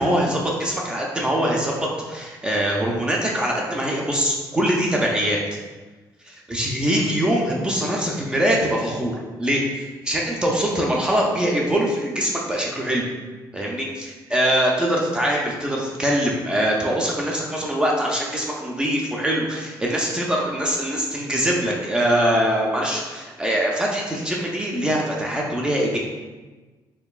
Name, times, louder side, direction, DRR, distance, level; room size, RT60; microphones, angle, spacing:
voice 1, 0.0-5.4 6.3-13.0 13.5-26.0, equal, 10° right, -2 dB, 0.4 m, -23 dB
4.4 x 2.9 x 2.3 m, 1.3 s
cardioid pair, 160°, 8 cm